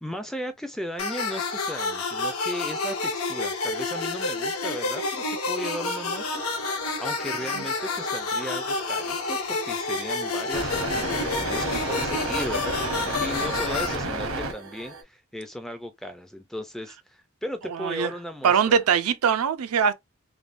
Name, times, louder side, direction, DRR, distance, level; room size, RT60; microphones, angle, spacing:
voice 1, 0.0-18.8, equal, ahead, 0.3 m, -36 dB
sound 1, 1.0-13.9, left 3 dB, 80° left, 0.8 m, -29 dB
sound 2, 6.1-15.0, right 1 dB, 70° right, 0.9 m, -33 dB
voice 2, 17.7-18.1 18.4-19.9, right 7 dB, 90° right, 0.5 m, -22 dB
3.3 x 2.2 x 2.5 m
head